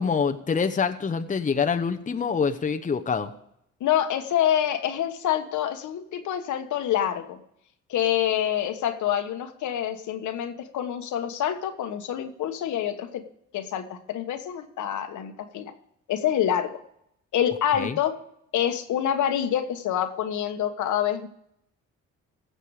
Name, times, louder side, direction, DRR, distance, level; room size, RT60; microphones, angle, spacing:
voice 1, 0.0-3.3 17.8-18.0, left 6 dB, 25° left, 8 dB, 0.8 m, -25 dB
voice 2, 3.8-7.4 7.9-13.2 13.5-15.7 16.1-16.8 17.3-18.1 18.5-21.3, left 10 dB, 75° left, 7 dB, 1.3 m, -26 dB
16.5 x 6.8 x 4.8 m, 0.74 s
cardioid pair, 90°, 30 cm